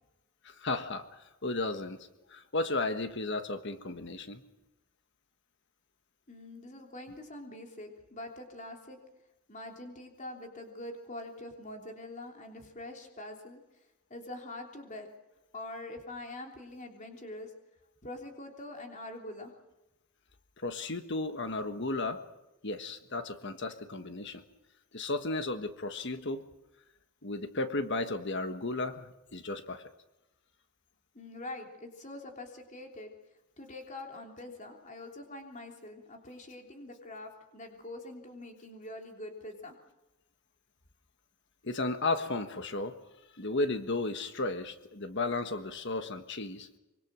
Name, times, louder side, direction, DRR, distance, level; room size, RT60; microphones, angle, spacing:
voice 1, 0.4-4.4 20.6-22.2 22.6-24.4 24.9-26.4 27.2-29.8 41.6-43.0 43.4-46.7, left 2 dB, 55° left, 8 dB, 1.4 m, -34 dB
voice 2, 6.3-9.0 9.5-13.6 14.1-15.1 15.5-17.5 18.0-19.5 31.1-33.1 33.6-39.7, left 1 dB, 35° left, 2 dB, 3.3 m, -44 dB
25.0 x 24.0 x 6.3 m, 1.0 s
head